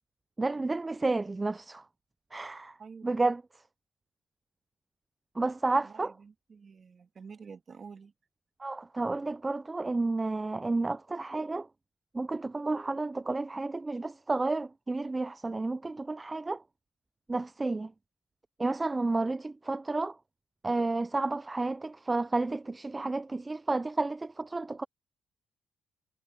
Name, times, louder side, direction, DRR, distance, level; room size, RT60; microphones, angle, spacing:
voice 1, 0.4-1.8 2.3-2.8 3.0-3.4 5.4-6.1 8.6-11.7 12.1-16.6 17.3-17.9 18.6-20.2 20.6-24.8, right 3 dB, 20° right, 0.4 m, -31 dB
voice 2, 2.8-3.2 5.8-8.1, right 5 dB, 40° right, 2.3 m, -49 dB
cardioid pair, 90°, 0 cm